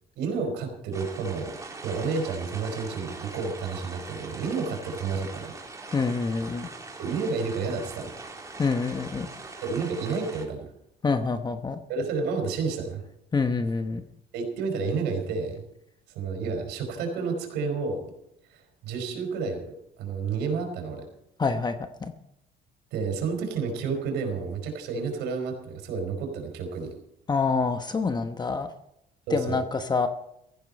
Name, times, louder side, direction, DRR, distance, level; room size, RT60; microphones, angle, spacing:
voice 1, 0.2-1.6 1.8-5.5 7.0-8.1 9.6-10.7 11.9-13.0 14.3-15.6 16.1-18.0 18.5-21.0 22.9-26.9 29.3-29.6, right 4 dB, 90° right, 4 dB, 4.7 m, -30 dB
sound 1, 0.9-10.4, right 3 dB, 20° right, 3.3 m, -42 dB
voice 2, 5.9-6.7 8.6-9.3 11.0-11.8 13.3-14.0 21.4-22.1 27.3-28.7 29.3-30.1, left 4 dB, 25° left, 7 dB, 1.0 m, -26 dB
16.5 x 14.5 x 4.2 m, 0.78 s
cardioid pair, 110°, 17 cm